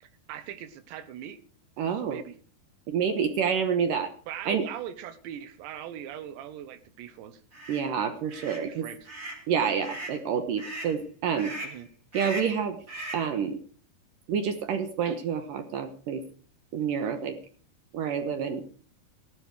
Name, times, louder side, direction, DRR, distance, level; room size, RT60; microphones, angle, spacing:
voice 1, 0.0-1.4 1.9-2.4 4.3-7.4 8.6-9.0 11.6-11.9, right 10 dB, 90° right, 12 dB, 3.4 m, -40 dB
voice 2, 1.8-2.2 2.9-4.1 4.5-4.6 7.7-8.9 9.5-11.6 12.1-12.8 13.1-13.6 14.3-16.2 16.7-17.4 17.9-18.6, right 7 dB, 70° right, 9 dB, 2.2 m, -28 dB
sound 1, 7.5-7.8 8.3-8.6 9.0-9.4 9.8-10.2 10.6-10.9 11.4-11.8 12.1-12.6 12.9-13.3, right 1 dB, 20° right, 3.5 m, -38 dB
15.5 x 12.0 x 4.7 m, 0.41 s
omnidirectional pair, 4.9 m